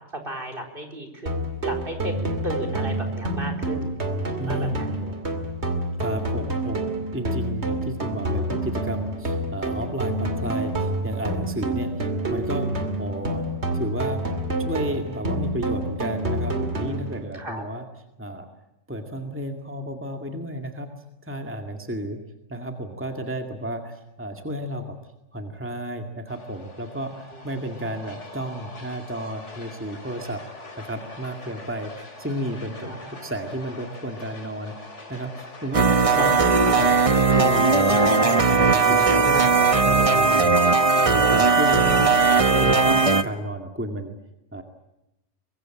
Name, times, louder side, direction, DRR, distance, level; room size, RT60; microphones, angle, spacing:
voice 1, 0.1-5.1 17.3-17.7 27.3-27.4 32.8-33.2 36.2-36.3, equal, 50° right, 3 dB, 4.4 m, -35 dB
sound 1, 1.3-17.3, right 1 dB, 65° right, 2.8 m, -28 dB
voice 2, 4.4-4.9 6.0-12.7 13.0-13.4 13.7-14.2 14.6-17.9 18.2-18.5 18.9-20.9 21.2-22.2 22.5-25.0 25.3-30.4 30.7-32.9 33.2-36.9 37.4-39.5 39.8-40.7 41.1-42.0 42.4-44.2 44.5-44.6, equal, 10° right, 4 dB, 2.1 m, -32 dB
sound 2, 26.3-41.3, left 2 dB, 85° left, 3.1 m, -43 dB
sound 3, 35.7-43.2, right 4 dB, 30° right, 1.2 m, -18 dB
24.5 x 22.0 x 9.1 m, 0.88 s
omnidirectional pair, 1.2 m